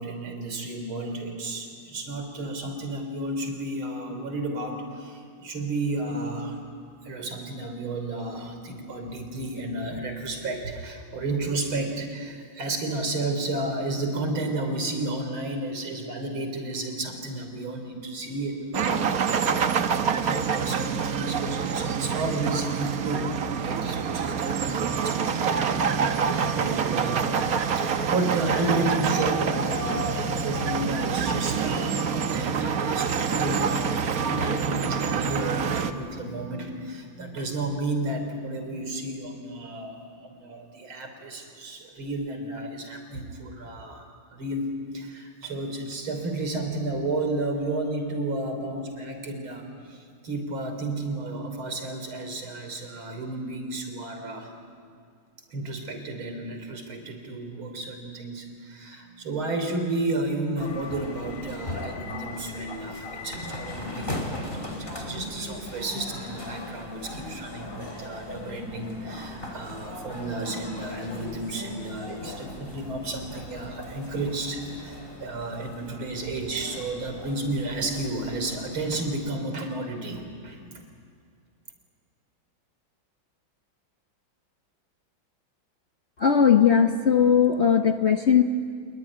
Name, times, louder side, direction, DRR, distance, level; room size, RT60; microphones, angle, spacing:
voice 1, 0.0-6.7 7.0-23.3 23.6-54.5 55.5-80.8, right 2 dB, 85° right, 5 dB, 4.2 m, -32 dB
sound 1, 18.7-35.9, right 6 dB, 50° right, 1.3 m, -26 dB
sound 2, 60.6-79.2, left 2 dB, 25° left, 3.3 m, -39 dB
sound 3, 64.8-74.0, equal, ahead, 6.7 m, -50 dB
voice 2, 86.2-88.4, left 7 dB, 50° left, 6 dB, 0.8 m, -19 dB
27.5 x 20.5 x 9.9 m, 2.1 s
omnidirectional pair, 2.2 m